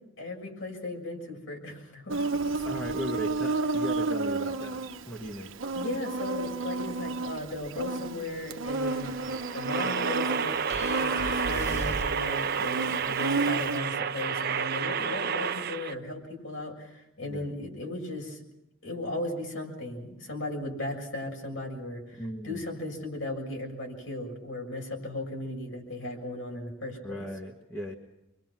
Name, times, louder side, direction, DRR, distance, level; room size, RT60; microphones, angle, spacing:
voice 1, 0.2-2.4 5.7-9.1 9.5-18.4 18.8-27.2, left 1 dB, 70° left, 1 dB, 7.0 m, -36 dB
Insect, 2.1-13.8, right 3 dB, 75° right, 1.2 m, -32 dB
voice 2, 2.6-5.5 17.2-17.5 22.2-22.6 27.0-27.9, equal, 10° left, -1 dB, 1.7 m, -37 dB
sound 1, 8.5-15.9, right 6 dB, 50° right, 0.8 m, -30 dB
sound 2, 10.7-12.3, right 1 dB, 35° left, 2.2 m, -35 dB
27.0 x 23.5 x 6.0 m, 0.87 s
head